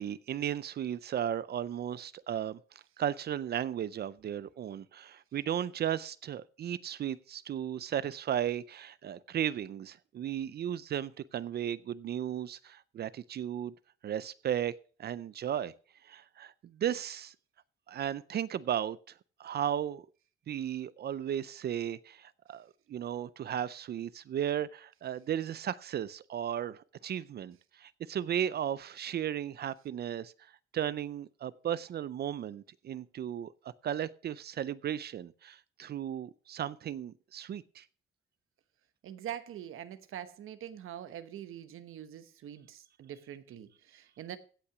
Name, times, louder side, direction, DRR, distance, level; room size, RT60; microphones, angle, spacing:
voice 1, 0.0-13.7 14.0-14.7 15.0-15.7 16.0-17.3 17.9-19.1 19.4-20.1 20.5-37.8, right 10 dB, 50° right, 0.5 m, -35 dB
voice 2, 39.0-44.4, right 10 dB, 90° right, 1.1 m, -44 dB
16.0 x 5.8 x 5.9 m
wide cardioid pair, 165°, 21 cm